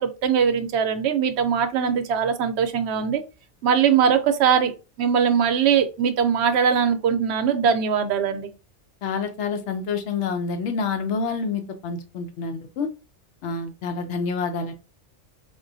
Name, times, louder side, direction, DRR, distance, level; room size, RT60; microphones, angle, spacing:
voice 1, 0.0-3.2 3.6-8.5, right 7 dB, 70° right, 0.8 m, -21 dB
voice 2, 9.0-12.9 13.4-14.7, left 5 dB, 75° left, 0.9 m, -28 dB
3.7 x 2.4 x 2.6 m
omnidirectional pair, 1.2 m